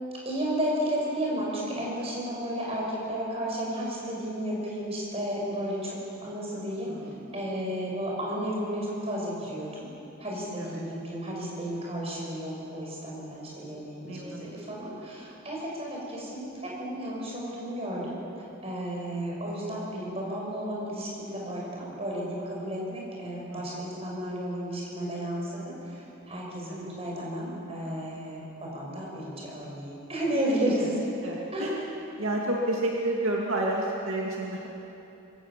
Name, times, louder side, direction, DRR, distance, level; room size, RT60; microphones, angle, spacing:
voice 1, 0.2-6.0 6.2-6.9 7.3-9.9 10.2-18.2 18.6-31.0 31.5-31.7, equal, 30° right, -3 dB, 5.9 m, -33 dB
voice 2, 6.9-7.3 10.6-10.8 14.0-14.8 23.5-23.9 26.7-26.9 30.8-30.9 31.2-31.8 32.2-34.7, right 1 dB, 75° right, -2 dB, 2.4 m, -31 dB
25.5 x 16.5 x 7.4 m, 3.0 s
head